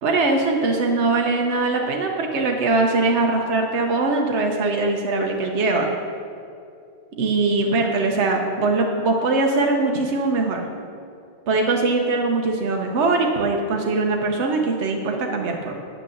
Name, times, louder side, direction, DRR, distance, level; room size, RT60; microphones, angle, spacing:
voice 1, 0.0-5.9 7.2-10.6 11.5-15.7, right 3 dB, 75° right, 1 dB, 1.2 m, -21 dB
9.4 x 6.3 x 7.0 m, 2.4 s
omnidirectional pair, 1.2 m